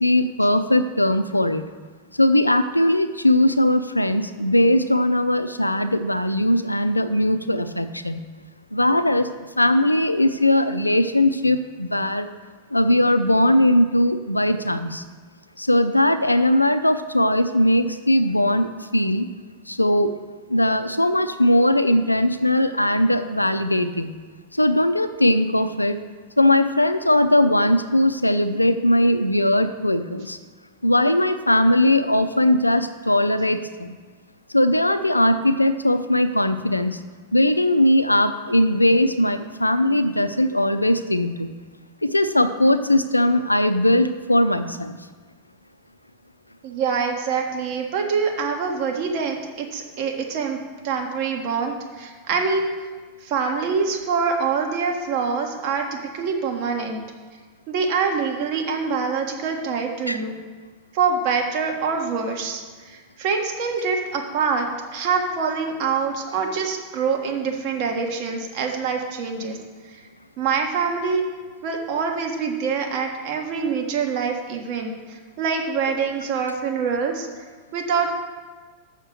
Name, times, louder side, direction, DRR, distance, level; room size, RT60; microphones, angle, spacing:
voice 1, 0.0-1.6 2.2-8.2 8.7-9.3 9.6-12.3 12.7-15.0 15.6-19.3 19.7-20.1 20.5-24.1 24.5-26.0 26.4-30.4 30.8-33.9 34.5-37.0 37.3-41.5 42.0-45.0 60.1-60.2 75.9-76.0, left 1 dB, 85° left, 10 dB, 0.5 m, -19 dB
voice 2, 46.6-50.6 50.8-52.7 53.2-57.0 57.7-60.4 60.9-62.6 62.9-64.7 64.9-69.6 70.4-71.2 71.6-77.3 77.7-78.1, right 5 dB, 45° right, 2 dB, 1.4 m, -25 dB
6.7 x 6.5 x 7.6 m, 1.4 s
figure-of-eight pair, 90°, 0 cm